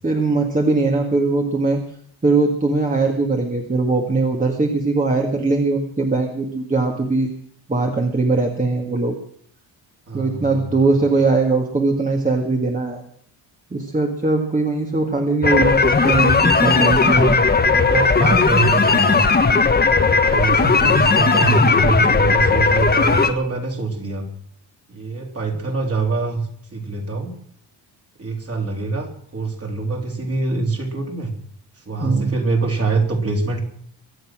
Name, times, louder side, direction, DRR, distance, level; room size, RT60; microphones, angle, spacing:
voice 1, 0.0-1.8 2.2-7.3 7.7-9.1 10.1-13.0 13.7-17.3 32.0-32.3, right 3 dB, 20° right, 1 dB, 2.0 m, -20 dB
voice 2, 10.1-10.9 17.0-19.3 19.9-24.3 24.9-27.3 28.2-31.3 31.9-33.6, right 3 dB, 35° right, 2 dB, 3.6 m, -24 dB
sound 1, 15.4-23.3, left 4 dB, 20° left, 1.5 m, -16 dB
23.5 x 8.3 x 6.3 m, 0.62 s
cardioid pair, 110°, 43 cm